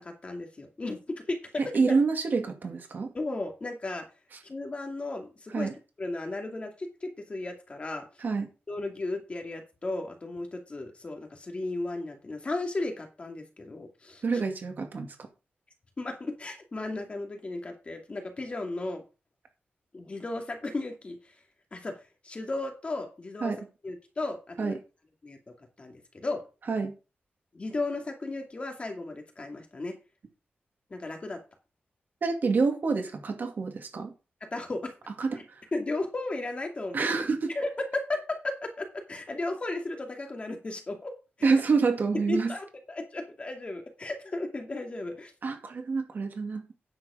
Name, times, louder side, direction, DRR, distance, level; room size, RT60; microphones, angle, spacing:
voice 1, 0.0-1.5 1.9-2.0 3.1-4.1 4.4-5.7 6.0-8.2 8.7-14.2 16.0-19.0 19.9-21.4 21.7-23.5 23.8-24.8 25.2-26.4 27.5-30.0 30.9-31.4 34.4-34.9 35.4-35.5 35.7-37.1 37.5-41.5 42.1-45.3, left 2 dB, 30° left, 2.4 m, -35 dB
voice 2, 1.6-3.1 5.5-5.7 8.2-8.5 14.2-15.2 23.4-23.6 24.6-24.8 26.7-26.9 32.2-34.1 35.2-35.6 36.9-37.5 41.4-42.5 45.4-46.7, right 4 dB, 50° right, 2.2 m, -27 dB
9.9 x 7.6 x 5.0 m
wide cardioid pair, 160°, 4 cm